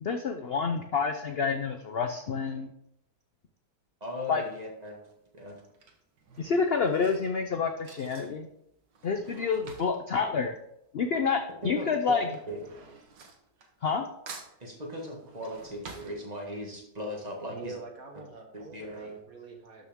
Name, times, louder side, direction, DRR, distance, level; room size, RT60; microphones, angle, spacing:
voice 1, 0.0-2.7 4.3-4.4 6.4-8.5 9.0-10.5 10.9-12.3 13.8-14.1, left 5 dB, 65° left, 5 dB, 0.6 m, -28 dB
voice 2, 4.0-5.0 5.3-5.6 11.6-12.6 14.6-17.7 18.5-19.2, equal, 25° right, 0 dB, 1.9 m, -38 dB
Drawer open or close / Cutlery silverware, 4.3-4.6 5.5-11.4 11.6-14.0 14.3-16.8 17.2-17.3 17.5-17.6, right 4 dB, 80° right, 2.0 m, -50 dB
voice 3, 17.5-19.9, right 4 dB, 50° right, 2 dB, 1.9 m, -45 dB
12.5 x 6.3 x 3.6 m, 0.79 s
omnidirectional pair, 1.9 m